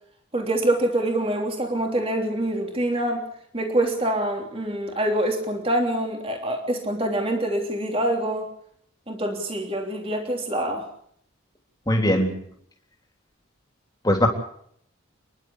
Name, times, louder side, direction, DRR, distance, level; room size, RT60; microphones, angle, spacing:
voice 1, 0.3-3.2 3.5-8.5 9.1-10.8, right 1 dB, 30° right, 2 dB, 3.3 m, -25 dB
voice 2, 11.9-12.3 14.0-14.3, left 1 dB, 20° left, 2 dB, 3.5 m, -20 dB
29.5 x 11.5 x 8.3 m, 0.68 s
head